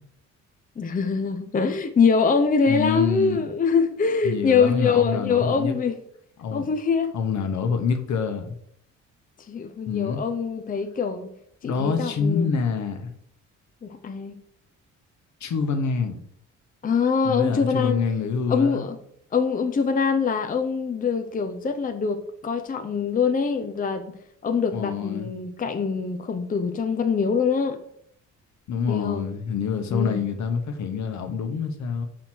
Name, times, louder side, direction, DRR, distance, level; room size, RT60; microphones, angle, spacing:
voice 1, 0.8-6.0 6.5-7.1 9.5-11.3 11.6-12.5 13.8-14.4 16.8-18.0 18.5-19.0 19.3-24.1 24.4-27.8 28.9-29.3 29.9-30.2, left 5 dB, 30° left, 7 dB, 0.6 m, -24 dB
voice 2, 2.7-3.4 4.2-5.7 6.4-6.6 7.1-8.5 9.9-10.2 11.6-13.1 15.4-16.2 17.2-18.8 24.7-25.3 28.7-32.1, left 5 dB, 70° left, 6 dB, 1.2 m, -26 dB
6.0 x 5.0 x 4.5 m, 0.69 s
cardioid pair, 90°, 30 cm